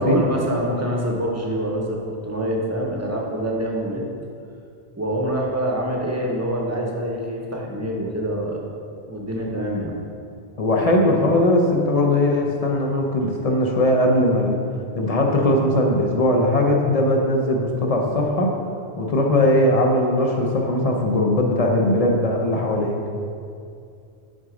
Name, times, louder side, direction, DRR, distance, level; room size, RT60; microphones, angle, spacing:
voice 1, 0.0-4.0 5.0-8.6 9.1-9.9, right 1 dB, 15° right, -2 dB, 0.7 m, -25 dB
voice 2, 10.6-14.6 14.9-18.6 19.0-23.0, left 1 dB, 45° left, 0 dB, 0.6 m, -19 dB
6.2 x 3.9 x 4.9 m, 2.4 s
omnidirectional pair, 1.1 m